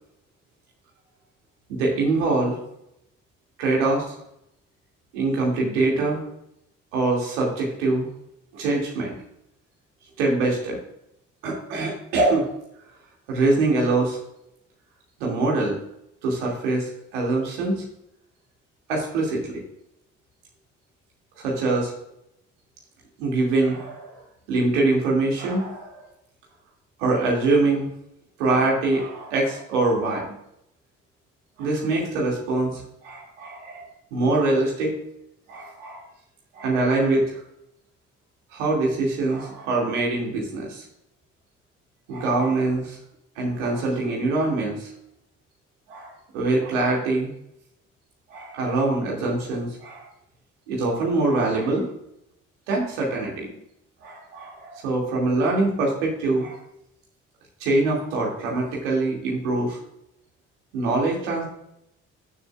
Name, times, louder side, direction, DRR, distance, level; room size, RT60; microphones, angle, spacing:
voice 1, 1.7-2.6 3.6-4.2 5.1-6.2 6.9-8.1 8.5-9.1 10.2-10.8 11.4-12.5 13.3-14.2 15.2-15.8 16.2-17.8 18.9-19.6 21.4-21.9 23.2-24.2 24.5-26.0 27.0-27.9 28.4-30.2 31.6-35.0 35.5-36.0 36.5-37.4 38.5-40.8 42.1-43.0 43.4-44.9 45.9-47.3 48.3-50.1 50.7-51.9 52.7-53.5 54.0-56.6 57.6-59.8 60.7-61.4, right 2 dB, 75° right, -2 dB, 2.5 m, -24 dB
15.5 x 7.1 x 2.4 m, 0.78 s
figure-of-eight pair, 40°, 36 cm